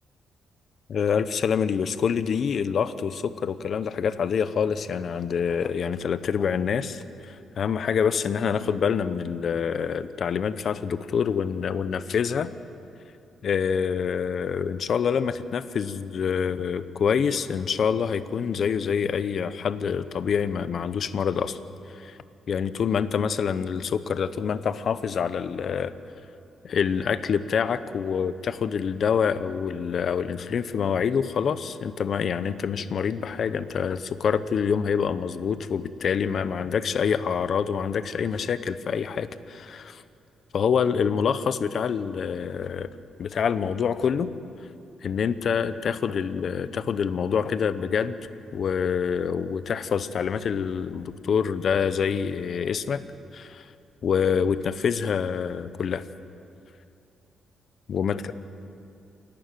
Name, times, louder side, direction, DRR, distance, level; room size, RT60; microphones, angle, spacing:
voice 1, 0.9-12.5 13.4-21.6 21.9-22.2 22.5-25.9 26.6-40.0 40.5-42.9 43.2-44.3 45.0-48.2 48.5-53.0 53.3-53.7 54.0-56.0 57.9-58.2, left 7 dB, 55° left, 13 dB, 0.8 m, -26 dB
28.0 x 12.0 x 9.2 m, 2.6 s
cardioid pair, 125°, 0 cm